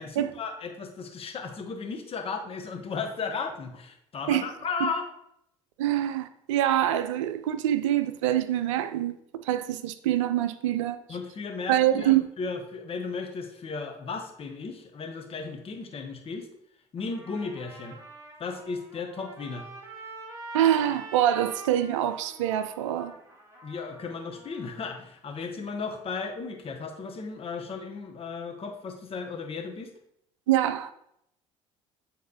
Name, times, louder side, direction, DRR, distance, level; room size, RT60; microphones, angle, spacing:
voice 1, 0.0-5.1 11.1-16.5 16.9-18.0 18.4-19.7 23.6-29.9, left 4 dB, 35° left, 1.1 m, -35 dB
voice 2, 5.8-9.2 9.4-11.0 11.7-12.3 20.5-23.1 30.5-30.9, right 12 dB, 75° right, 0.4 m, -25 dB
Trumpet, 17.0-25.0, right 2 dB, 15° right, 2.0 m, -45 dB
8.5 x 4.0 x 2.8 m
hypercardioid pair, 60°, 16 cm